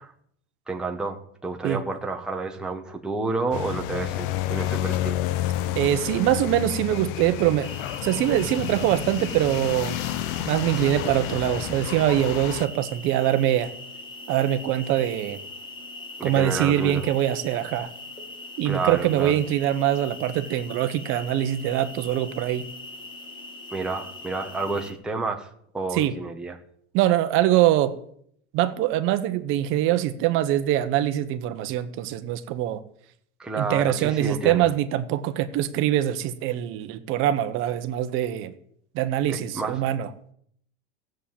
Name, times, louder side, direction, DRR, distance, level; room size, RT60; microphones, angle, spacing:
voice 1, 0.7-5.2 16.2-17.0 18.6-19.4 23.7-25.5 25.7-26.6 33.4-34.7 39.3-39.9, right 3 dB, ahead, 2 dB, 0.9 m, -30 dB
sound 1, 3.5-12.7, left 13 dB, 45° left, 0.6 m, -30 dB
voice 2, 5.7-7.7 8.0-10.0 10.5-13.7 14.3-15.4 16.2-17.9 18.6-22.6 25.9-26.1 26.9-28.0 28.5-32.8 33.5-38.5 38.9-40.1, right 12 dB, 35° right, 10 dB, 1.1 m, -23 dB
sound 2, 7.6-24.9, left 2 dB, 15° left, 1.8 m, -41 dB
15.5 x 7.8 x 8.7 m, 0.65 s
supercardioid pair, 180°, 35 cm